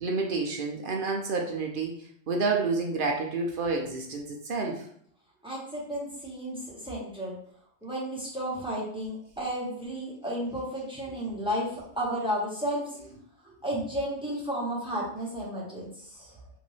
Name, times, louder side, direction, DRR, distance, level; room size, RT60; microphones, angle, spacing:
voice 1, 0.0-4.9, right 3 dB, 55° right, 1 dB, 0.6 m, -29 dB
voice 2, 5.4-7.4 7.8-12.8 13.4-16.3, equal, 5° right, -5 dB, 1.0 m, -33 dB
3.9 x 2.6 x 3.2 m, 0.64 s
omnidirectional pair, 1.4 m